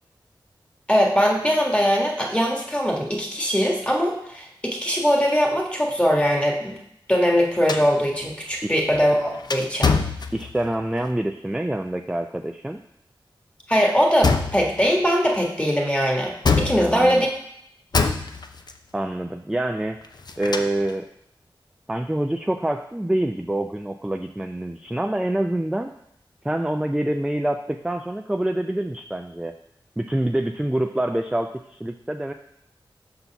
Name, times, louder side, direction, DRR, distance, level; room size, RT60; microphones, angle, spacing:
voice 1, 0.9-6.8 7.1-9.9 13.7-17.3, equal, 15° left, 1 dB, 1.5 m, -21 dB
sound 1, 7.7-10.8 14.2-14.9 16.4-17.3 17.9-18.8 20.0-20.9, left 4 dB, 50° left, 0.5 m, -25 dB
voice 2, 10.3-12.8 16.7-17.3 18.9-20.0 20.4-21.1 21.9-25.9 26.4-29.5 30.0-32.3, right 1 dB, 5° right, 6 dB, 0.4 m, -26 dB
5.8 x 4.1 x 5.7 m, 0.75 s
wide cardioid pair, 55°, 9 cm